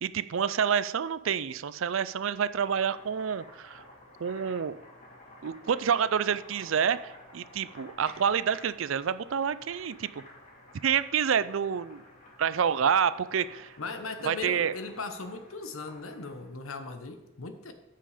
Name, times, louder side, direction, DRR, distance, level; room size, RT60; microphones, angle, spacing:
voice 1, 0.0-3.8 4.2-4.8 5.4-10.2 10.8-12.0 12.4-13.7 14.2-14.7, right 7 dB, 65° right, 15 dB, 0.4 m, -28 dB
Boiling, 2.5-16.5, left 1 dB, 35° left, 3.0 m, -53 dB
voice 2, 13.8-17.7, left 3 dB, 75° left, 8 dB, 1.1 m, -38 dB
14.0 x 5.7 x 5.0 m, 1.1 s
head